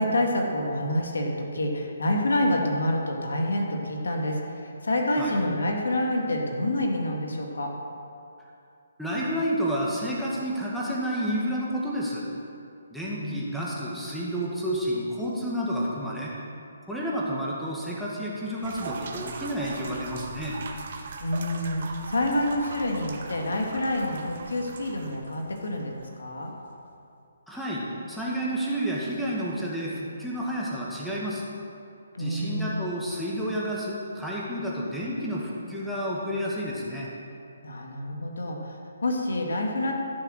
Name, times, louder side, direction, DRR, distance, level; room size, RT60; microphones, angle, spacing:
voice 1, 0.0-7.7 13.1-13.4 13.7-13.8 21.2-25.9 26.2-26.5 32.1-32.8 37.6-39.9, left 1 dB, 70° left, 1 dB, 2.1 m, -27 dB
voice 2, 9.0-12.2 12.9-16.3 16.9-20.6 27.5-31.4 32.2-37.1, equal, ahead, -6 dB, 2.0 m, -30 dB
sound 1, 18.6-26.2, right 4 dB, 50° right, 1.4 m, -40 dB
14.5 x 6.7 x 6.5 m, 2.6 s
figure-of-eight pair, 140°, 0 cm